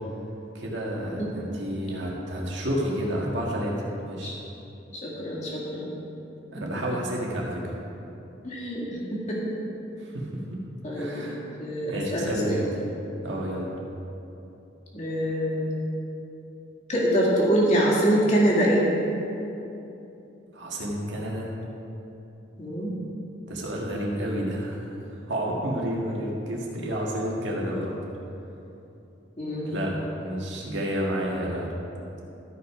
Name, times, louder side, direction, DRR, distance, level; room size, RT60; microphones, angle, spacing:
voice 1, 0.5-4.3 6.5-7.7 10.0-10.6 10.9-11.4 11.9-12.7 13.2-13.7 20.5-21.5 23.5-24.8 25.3-27.9 29.6-31.7, equal, 80° right, -3 dB, 1.8 m, -30 dB
voice 2, 4.9-6.0 8.4-9.4 10.8-12.6 14.9-15.7 16.9-18.9 22.6-22.9 29.4-29.8, equal, 35° left, -5 dB, 2.0 m, -25 dB
13.0 x 5.8 x 4.9 m, 2.9 s
head